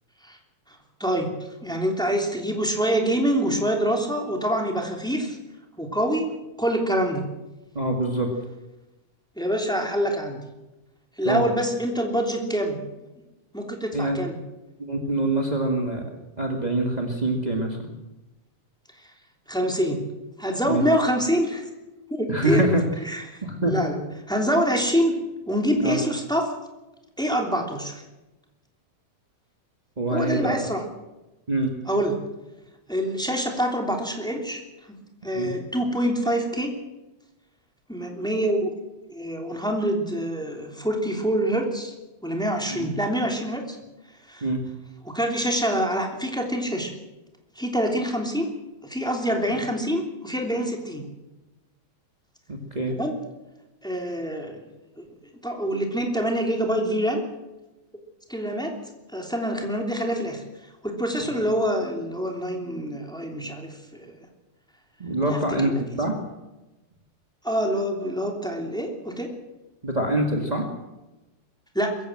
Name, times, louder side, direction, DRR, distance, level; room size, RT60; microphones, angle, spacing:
voice 1, 1.0-1.3 1.6-5.4 5.8-6.3 6.6-7.3 9.4-10.4 11.2-12.8 13.5-14.4 19.5-20.0 20.4-21.7 22.1-22.6 23.0-23.2 23.6-24.0 24.3-25.1 25.5-26.5 27.2-28.0 30.1-30.8 31.9-32.2 32.9-34.6 35.2-36.7 37.9-38.7 39.1-41.9 42.2-43.8 44.3-44.5 45.0-46.9 47.6-48.5 48.8-51.0 52.9-53.2 53.8-54.6 55.4-57.2 58.3-58.7 59.1-60.4 60.8-64.1 65.3-65.7 67.4-69.3 71.7-71.9, equal, ahead, 2 dB, 2.4 m, -25 dB
voice 2, 7.7-8.3 11.2-11.5 13.9-14.2 14.8-16.0 16.4-17.8 20.7-20.8 22.3-22.8 23.4-23.9 25.8-26.0 30.0-30.7 31.5-31.7 35.3-35.6 42.8-42.9 44.4-44.6 52.5-53.0 65.0-66.1 69.8-70.7, right 1 dB, 25° right, 1 dB, 0.9 m, -25 dB
22.0 x 15.5 x 7.8 m, 1.0 s
omnidirectional pair, 4.2 m